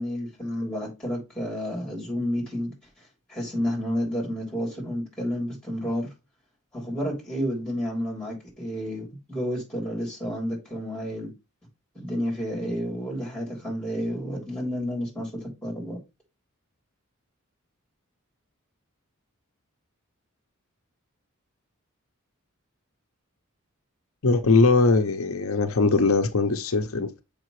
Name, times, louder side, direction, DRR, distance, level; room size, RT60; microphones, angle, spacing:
voice 1, 0.0-2.7 3.3-6.1 6.7-11.3 11.9-16.0, equal, 5° left, 3.2 m, -30 dB
voice 2, 24.2-27.2, left 3 dB, 70° left, 0.7 m, -21 dB
6.6 x 5.1 x 3.1 m
head